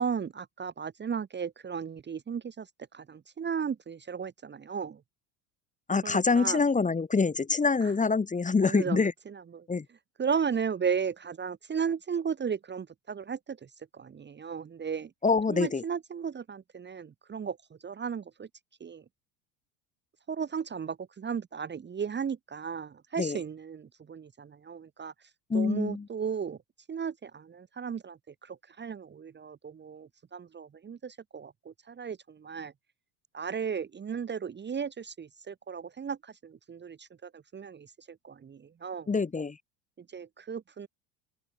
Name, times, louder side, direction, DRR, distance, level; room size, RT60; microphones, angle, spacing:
voice 1, 0.0-2.7 2.9-5.0 6.0-6.6 7.8-7.9 8.6-9.7 10.2-15.1 15.5-17.6 17.8-18.5 18.8-19.0 20.3-25.1 25.5-26.6 26.9-32.7 33.3-39.1 40.0-40.9, right 6 dB, 25° right, 1.2 m, -35 dB
voice 2, 5.9-9.1 9.7-9.8 15.2-15.8 23.2-23.4 25.5-26.0 39.1-39.6, left 4 dB, 15° left, 1.4 m, -25 dB
open air
hypercardioid pair, 80°, 46 cm